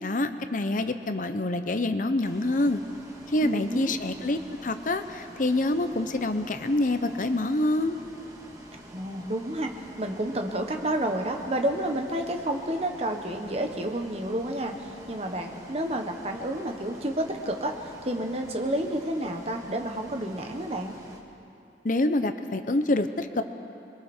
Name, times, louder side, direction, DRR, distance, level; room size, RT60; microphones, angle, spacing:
voice 1, 0.0-2.8 3.3-8.0 21.8-23.4, left 2 dB, 45° left, 9 dB, 0.8 m, -26 dB
Bus, 2.2-21.2, right 1 dB, 20° right, 1.9 m, -47 dB
voice 2, 3.4-4.0 8.9-20.9, right 1 dB, 35° right, 4 dB, 1.4 m, -30 dB
27.0 x 22.0 x 4.5 m, 2.7 s
head